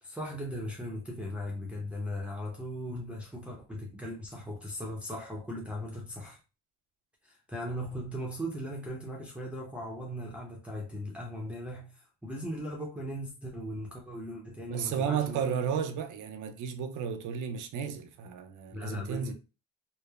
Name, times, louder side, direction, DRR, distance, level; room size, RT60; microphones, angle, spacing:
voice 1, 0.0-6.4 7.2-15.4 18.7-19.3, equal, 5° right, 0.6 m, -38 dB
voice 2, 14.7-19.3, right 7 dB, 80° right, 0.5 m, -33 dB
3.0 x 2.0 x 2.3 m
cardioid pair, 90°, 30 cm